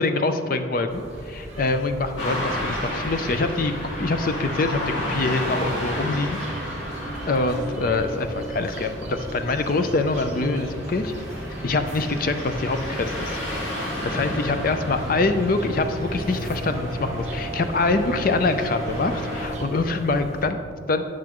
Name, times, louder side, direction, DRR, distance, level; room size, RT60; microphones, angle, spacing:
voice 1, 0.0-3.7 4.0-6.4 6.7-6.9 7.3-11.1 11.6-13.4 13.8-21.0, left 3 dB, 45° left, 8 dB, 0.4 m, -25 dB
sound 1, 0.9-20.5, right 1 dB, 35° right, 1.3 m, -39 dB
Car passing by / Traffic noise roadway noise, 2.2-19.5, left 1 dB, 80° left, 1.8 m, -33 dB
sound 2, 3.3-20.2, right 1 dB, 15° right, 0.8 m, -36 dB
10.5 x 6.0 x 3.0 m, 2.3 s
head